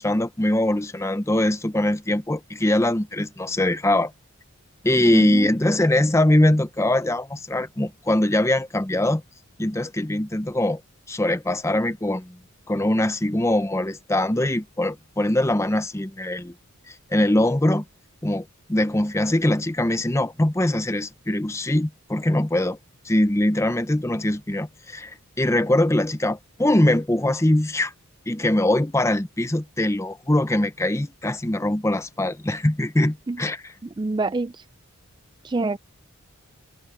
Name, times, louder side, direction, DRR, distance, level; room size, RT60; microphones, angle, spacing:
voice 1, 0.0-4.1 4.8-9.2 9.6-10.8 11.1-12.4 12.7-16.5 16.9-17.8 18.2-22.8 23.0-27.9 28.3-33.7, left 1 dB, 10° left, 0.7 m, -22 dB
voice 2, 5.1-5.5 33.3-33.4 34.0-34.6 35.4-35.8, right 3 dB, 20° right, 0.3 m, -26 dB
head